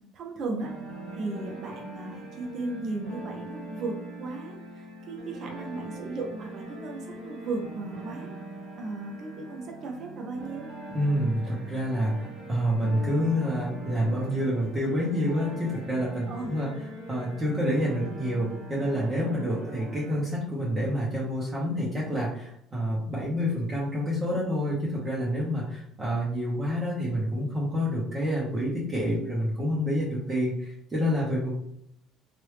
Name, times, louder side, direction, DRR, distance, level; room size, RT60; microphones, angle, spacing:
voice 1, 0.1-0.7 1.1-8.3 8.8-10.7 16.3-16.5, right 3 dB, 50° right, 0 dB, 0.6 m, -36 dB
sound 1, 0.6-20.2, right 2 dB, 65° right, 1.4 m, -41 dB
voice 2, 10.9-31.5, equal, 20° right, -6 dB, 0.9 m, -28 dB
3.2 x 2.6 x 3.2 m, 0.74 s
cardioid pair, 125°, 0 cm